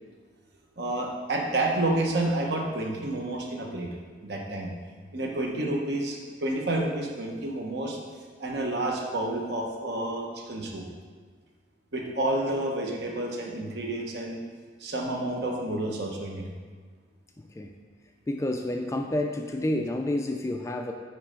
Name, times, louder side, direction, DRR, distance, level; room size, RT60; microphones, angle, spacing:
voice 1, 0.8-3.9 4.2-4.7 5.1-8.0 8.4-10.8 11.9-14.4 14.8-16.5, right 1 dB, 60° right, 0 dB, 1.0 m, -29 dB
voice 2, 17.4-17.7 18.3-20.9, left 1 dB, 15° left, 4 dB, 0.3 m, -29 dB
9.2 x 3.3 x 5.1 m, 1.5 s
head